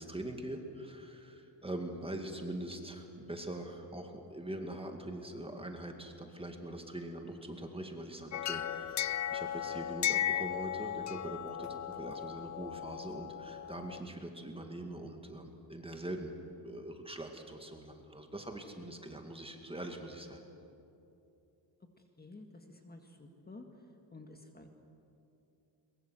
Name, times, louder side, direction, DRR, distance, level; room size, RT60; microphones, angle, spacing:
voice 1, 0.0-20.4, right 1 dB, 10° right, 4 dB, 2.1 m, -43 dB
sound 1, 8.3-14.0, left 11 dB, 40° left, 0.5 m, -36 dB
voice 2, 22.2-23.7 24.1-24.7, left 2 dB, 20° left, 4 dB, 1.8 m, -51 dB
22.5 x 22.0 x 7.7 m, 2.8 s
cardioid pair, 125°, 46 cm